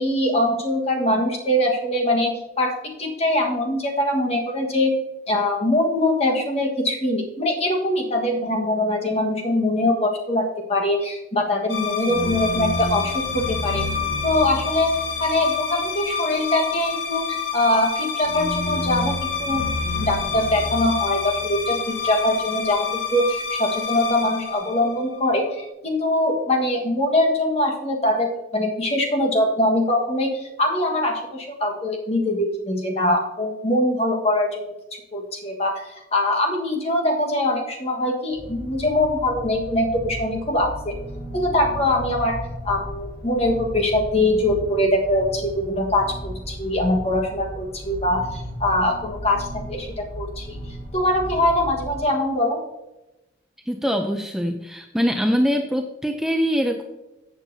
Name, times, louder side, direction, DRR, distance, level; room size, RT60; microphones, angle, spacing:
voice 1, 0.0-2.7 3.0-4.9 5.3-13.8 14.2-14.9 15.2-19.6 20.0-21.8 22.0-34.6 35.1-40.9 41.3-42.4 42.6-50.6 50.9-52.6, left 1 dB, 35° left, 1 dB, 1.4 m, -22 dB
sound 1, 11.7-25.3, left 5 dB, 80° left, 1.3 m, -27 dB
sound 2, 38.3-52.0, equal, 55° left, 3.5 m, -36 dB
voice 2, 53.7-56.8, equal, ahead, 4 dB, 0.4 m, -23 dB
14.0 x 7.4 x 2.7 m, 0.97 s
head